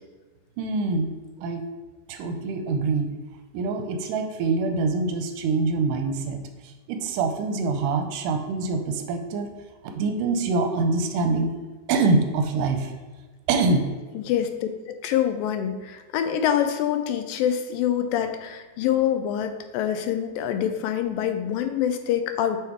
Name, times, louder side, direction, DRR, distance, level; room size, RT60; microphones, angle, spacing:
voice 1, 0.6-1.1 1.4-1.6 2.1-3.1 3.5-9.5 9.9-11.5 11.9-12.9 13.5-13.9, right 3 dB, 85° right, 5 dB, 2.2 m, -25 dB
voice 2, 14.1-14.7 15.0-22.6, left 10 dB, 90° left, 7 dB, 2.3 m, -25 dB
6.2 x 3.5 x 4.5 m, 1.3 s
omnidirectional pair, 3.9 m